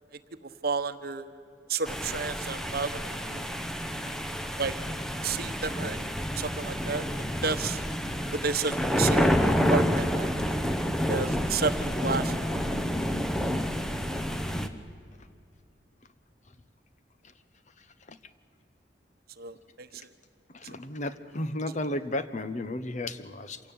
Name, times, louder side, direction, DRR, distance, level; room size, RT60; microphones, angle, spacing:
voice 1, 0.6-1.2 1.7-3.5 4.6-4.7 5.2-6.0 6.4-7.0 7.3-7.8 8.3-10.4 11.1-12.3 19.4-20.0 21.9-22.0, right 5 dB, 60° right, 11 dB, 1.1 m, -31 dB
sound 1, 1.9-14.7, equal, 5° left, 1.0 m, -29 dB
voice 2, 20.5-23.6, left 1 dB, 40° left, 12 dB, 1.0 m, -33 dB
26.5 x 17.0 x 8.8 m, 2.4 s
head